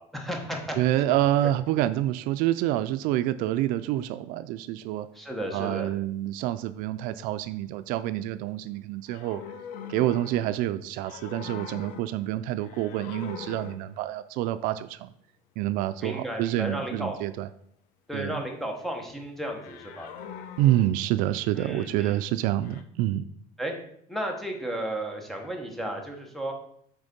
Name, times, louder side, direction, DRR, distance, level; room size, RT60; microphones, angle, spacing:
voice 1, 0.0-0.8 5.1-5.9 16.0-17.2 18.1-20.1 21.6-22.2 23.6-23.7 24.1-26.5, right 1 dB, ahead, 2 dB, 1.1 m, -33 dB
voice 2, 0.8-5.1 5.5-9.4 9.9-15.1 15.6-17.5 18.1-18.4 20.6-23.3, right 14 dB, 70° right, 12 dB, 0.4 m, -27 dB
sound 1, 9.1-10.7 11.0-12.3 12.6-14.0 19.6-21.6 22.6-22.8, left 7 dB, 70° left, 0.8 m, -42 dB
8.1 x 3.5 x 5.2 m, 0.69 s
cardioid pair, 160°, 15 cm